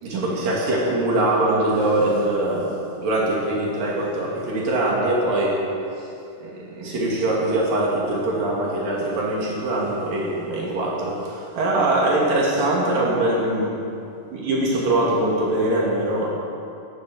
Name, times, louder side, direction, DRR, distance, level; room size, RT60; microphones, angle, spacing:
voice 1, 0.0-5.6 6.4-13.8 14.3-16.3, right 1 dB, 80° right, -3 dB, 4.3 m, -22 dB
15.0 x 12.0 x 7.7 m, 2.8 s
omnidirectional pair, 3.9 m